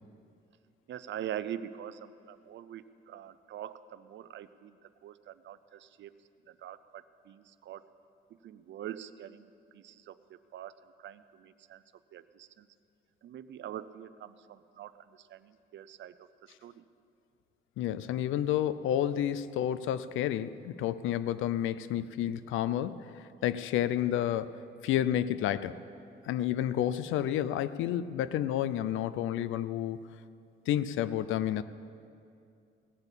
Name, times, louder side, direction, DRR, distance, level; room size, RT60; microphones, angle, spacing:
voice 1, 0.9-6.1 6.5-7.9 8.3-11.8 12.1-12.7 13.2-16.8, right 10 dB, 65° right, 14 dB, 0.6 m, -44 dB
voice 2, 17.8-23.1 23.4-25.8 26.2-30.0 30.7-31.6, left 11 dB, 85° left, 15 dB, 0.5 m, -30 dB
17.5 x 7.9 x 7.4 m, 2.5 s
cardioid pair, 90°, 20 cm